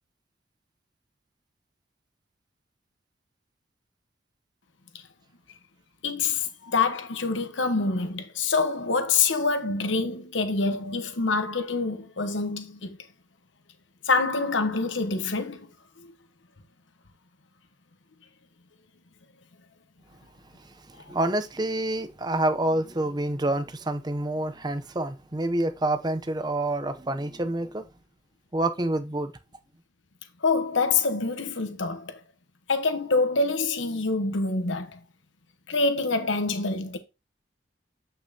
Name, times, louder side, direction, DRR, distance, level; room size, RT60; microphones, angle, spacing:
voice 1, 6.0-13.0 14.0-15.7 30.4-32.2 32.7-35.0 35.7-37.0, left 4 dB, 75° left, 1.1 m, -26 dB
voice 2, 20.6-27.9 28.5-29.3, right 1 dB, 20° right, 0.6 m, -28 dB
8.7 x 5.5 x 2.8 m
head